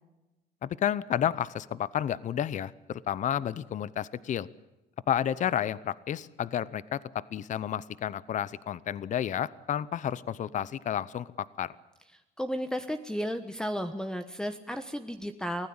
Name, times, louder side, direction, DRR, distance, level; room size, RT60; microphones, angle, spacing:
voice 1, 0.6-4.5 5.1-11.7, left 10 dB, 45° left, 19 dB, 0.7 m, -31 dB
voice 2, 12.4-15.7, equal, 5° left, 8 dB, 1.2 m, -33 dB
24.5 x 16.0 x 8.8 m, 1.0 s
cardioid pair, 110°, 17 cm